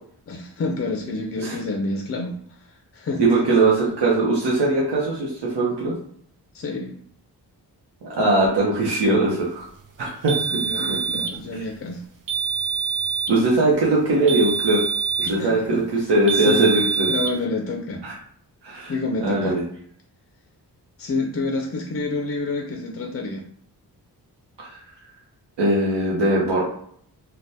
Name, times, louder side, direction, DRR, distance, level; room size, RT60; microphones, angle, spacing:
voice 1, 0.3-3.7 6.5-6.9 10.5-12.0 15.2-15.8 16.3-16.8 17.1-18.0 18.9-19.6 21.0-23.5, left 2 dB, 35° left, 1 dB, 0.4 m, -28 dB
voice 2, 3.2-5.9 8.0-9.6 10.0-10.3 10.7-11.0 13.3-14.8 15.2-15.8 16.1-17.1 18.0-18.1 18.6-18.9 19.2-19.6 24.6-24.8 25.6-26.6, right 2 dB, 85° right, -5 dB, 0.8 m, -20 dB
sound 1, 10.3-11.4 12.3-13.4 14.3-15.4 16.3-17.4, right 6 dB, 50° right, 0.6 m, -25 dB
3.3 x 2.2 x 2.7 m, 0.62 s
wide cardioid pair, 120°, 40 cm